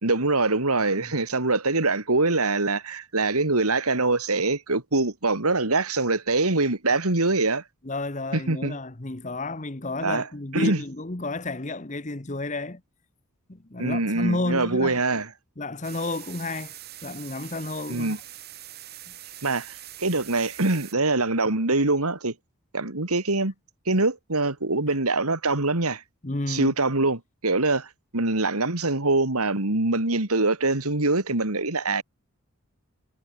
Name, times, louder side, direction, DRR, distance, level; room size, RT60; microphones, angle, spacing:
voice 1, 0.0-7.6 8.3-8.8 10.0-10.3 10.5-10.8 13.8-15.3 17.9-18.2 19.4-22.3 22.7-23.5 23.9-26.0 26.5-32.0, right 2 dB, 85° right, 3.0 m, -24 dB
voice 2, 7.8-12.8 13.5-15.0 15.6-16.7 17.0-18.2 19.1-19.2 26.2-26.7, left 2 dB, 35° left, 1.1 m, -31 dB
sound 1, 15.8-20.9, right 13 dB, 45° right, 2.8 m, -43 dB
head